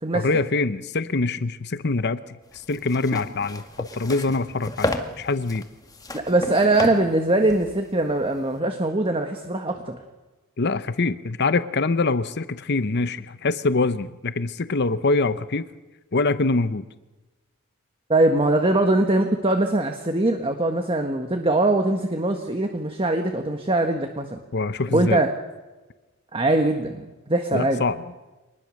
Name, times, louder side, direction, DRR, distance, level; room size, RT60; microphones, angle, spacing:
voice 1, 0.1-2.2 2.5-5.7 10.6-15.6 16.1-16.9 24.5-25.2 27.5-28.0, left 3 dB, 50° left, 13 dB, 0.8 m, -24 dB
sound 1, 2.5-8.6, left 1 dB, 15° left, 1.8 m, -33 dB
voice 2, 6.1-10.0 18.1-24.4 24.9-25.3 26.3-27.8, right 2 dB, 25° right, 5 dB, 1.5 m, -22 dB
25.0 x 20.0 x 6.5 m, 1.1 s
head